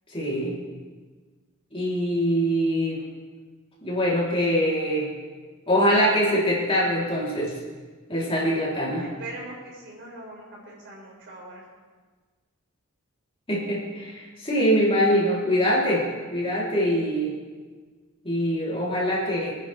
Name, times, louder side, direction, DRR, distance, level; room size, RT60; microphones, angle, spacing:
voice 1, 0.1-0.5 1.7-3.0 3.8-5.1 5.7-7.5 8.1-9.0 13.5-16.0 16.3-17.3 18.2-19.5, equal, 25° left, -6 dB, 3.9 m, -23 dB
voice 2, 8.9-11.7, right 2 dB, 60° right, -5 dB, 5.6 m, -41 dB
26.0 x 9.8 x 3.6 m, 1.4 s
head